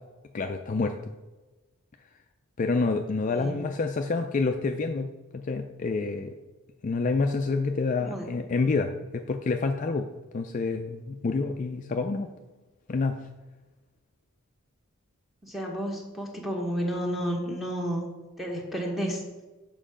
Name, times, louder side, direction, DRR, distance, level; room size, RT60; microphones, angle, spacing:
voice 1, 0.3-0.9 2.6-6.3 6.8-10.1 10.3-12.3 12.9-13.2, left 3 dB, 35° left, 5 dB, 0.3 m, -28 dB
voice 2, 15.4-18.0 18.4-19.2, equal, ahead, -2 dB, 1.2 m, -31 dB
7.5 x 5.4 x 5.0 m, 1.2 s
head